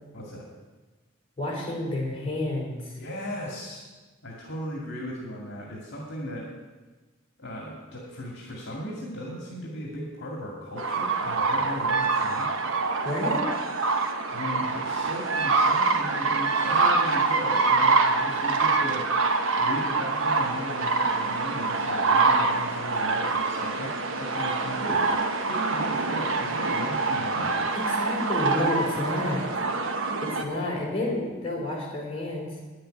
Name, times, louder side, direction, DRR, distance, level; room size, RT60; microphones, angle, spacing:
voice 1, 0.1-0.5 3.0-3.8 4.2-6.5 7.4-12.5 14.3-19.1 19.6-25.0 25.5-27.7, equal, 55° left, -2 dB, 2.3 m, -37 dB
voice 2, 1.4-2.9 13.0-13.5 27.7-29.5 30.2-32.5, left 1 dB, 30° left, -4 dB, 3.9 m, -30 dB
sound 1, 10.8-30.4, right 3 dB, 65° right, 1.1 m, -25 dB
10.0 x 7.8 x 9.2 m, 1.2 s
head